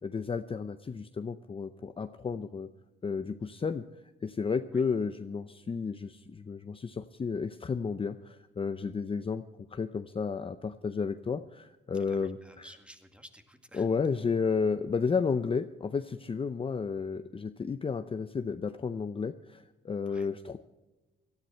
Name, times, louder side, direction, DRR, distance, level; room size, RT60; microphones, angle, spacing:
voice 1, 0.0-2.7 3.0-3.8 4.2-9.4 9.7-12.7 13.7-20.6, left 5 dB, 25° left, 10 dB, 0.6 m, -32 dB
voice 2, 12.0-13.9 20.0-20.3, equal, 5° right, 6 dB, 1.9 m, -53 dB
18.0 x 13.0 x 4.4 m, 1.1 s
cardioid pair, 90°, 20 cm